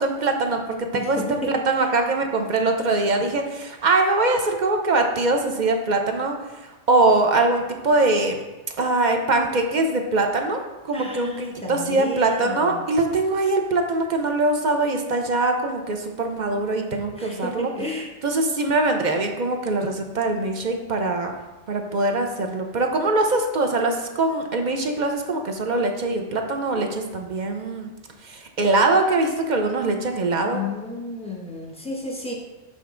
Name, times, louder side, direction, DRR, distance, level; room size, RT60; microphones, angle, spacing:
voice 1, 0.0-6.3 6.6-8.4 8.8-17.7 18.2-21.4 21.7-27.9 28.2-30.6, right 2 dB, 45° right, 4 dB, 0.7 m, -22 dB
voice 2, 0.9-1.8 10.9-12.8 17.2-18.1 30.5-32.3, left 2 dB, 5° left, -1 dB, 1.0 m, -32 dB
5.8 x 5.3 x 3.7 m, 1.1 s
omnidirectional pair, 1.2 m